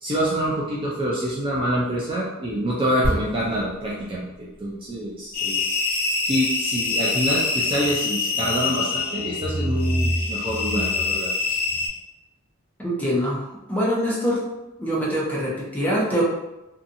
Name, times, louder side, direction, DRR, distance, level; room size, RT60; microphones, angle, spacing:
voice 1, 0.0-5.6 6.2-11.6, equal, 25° right, -5 dB, 0.4 m, -26 dB
sound 1, 3.0-6.7 7.0-7.2, equal, 50° right, 0.9 m, -32 dB
sound 2, 5.3-11.9, left 4 dB, 45° left, 0.5 m, -25 dB
voice 2, 12.8-14.4 14.8-16.2, equal, 5° left, -6 dB, 0.7 m, -24 dB
2.7 x 2.3 x 2.6 m, 0.98 s
head